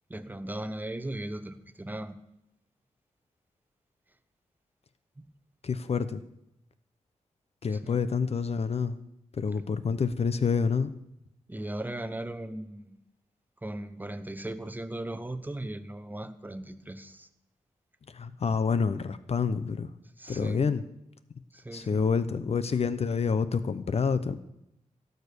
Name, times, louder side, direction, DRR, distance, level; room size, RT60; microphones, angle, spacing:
voice 1, 0.1-2.2 7.7-8.0 11.5-13.0 13.6-17.3 20.2-20.6 21.5-22.0, right 1 dB, 15° right, 9 dB, 0.9 m, -37 dB
voice 2, 5.6-6.2 7.6-9.0 9.3-10.9 18.1-19.9 20.3-20.8 21.7-24.4, left 5 dB, 55° left, 13 dB, 0.7 m, -28 dB
16.5 x 6.7 x 6.8 m, 0.83 s
wide cardioid pair, 95°, 13 cm